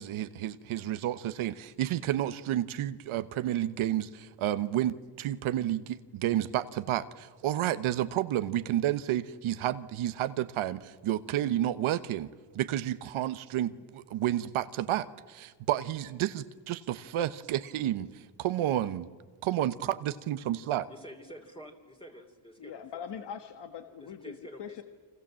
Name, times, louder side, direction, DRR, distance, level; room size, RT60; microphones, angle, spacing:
voice 1, 0.0-12.3 12.5-19.1 19.4-20.9, right 12 dB, 75° right, 12 dB, 1.1 m, -31 dB
voice 2, 20.6-22.8 24.0-24.8, equal, 10° left, 2 dB, 2.9 m, -48 dB
voice 3, 22.6-24.8, left 7 dB, 55° left, 7 dB, 1.5 m, -42 dB
29.5 x 25.0 x 7.6 m, 1.4 s
cardioid pair, 100°, 49 cm